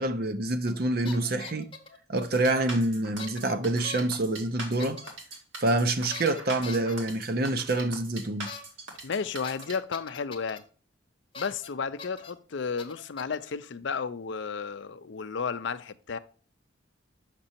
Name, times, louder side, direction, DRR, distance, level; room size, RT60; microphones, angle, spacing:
voice 1, 0.0-1.7 2.1-5.0 5.6-8.5, right 2 dB, 50° right, 0.7 m, -27 dB
sound 1, 0.7-2.0 3.2-3.5 3.8-4.2 4.8-5.1 6.1-7.0 8.5-8.6 8.9-9.0 9.4-10.6 11.3-11.7 12.0-12.3 12.8-13.5, left 4 dB, 25° left, 0.8 m, -42 dB
sound 2, 2.2-9.7, right 2 dB, 70° right, 1.9 m, -41 dB
voice 2, 9.0-10.6 11.4-16.2, left 5 dB, 65° left, 0.5 m, -33 dB
6.5 x 6.0 x 2.8 m
head